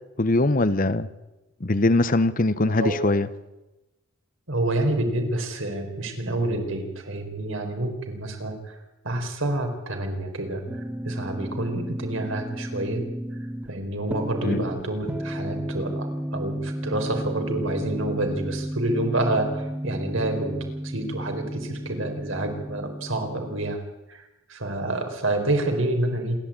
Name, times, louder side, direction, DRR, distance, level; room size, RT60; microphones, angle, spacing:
voice 1, 0.2-1.1 1.6-3.3 14.4-14.6, left 2 dB, 40° left, 14 dB, 0.9 m, -21 dB
voice 2, 4.5-8.8 9.0-13.0 13.7-20.6 20.8-23.8 24.1-26.4, right 1 dB, 70° right, 4 dB, 4.3 m, -28 dB
sound 1, 10.7-23.7, equal, 10° right, 0.8 m, -33 dB
27.0 x 12.5 x 8.8 m, 1.0 s
head